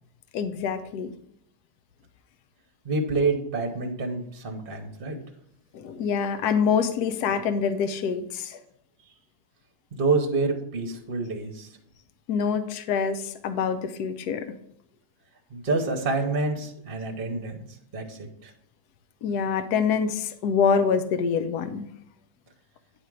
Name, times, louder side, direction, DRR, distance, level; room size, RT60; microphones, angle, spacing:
voice 1, 0.3-1.1 5.7-8.6 12.3-14.5 19.2-21.9, left 6 dB, 75° left, 9 dB, 1.2 m, -25 dB
voice 2, 2.8-5.2 9.9-11.7 15.5-17.6 17.9-18.5, right 3 dB, 40° right, 3 dB, 1.1 m, -27 dB
9.9 x 3.6 x 6.3 m, 0.72 s
omnidirectional pair, 1.7 m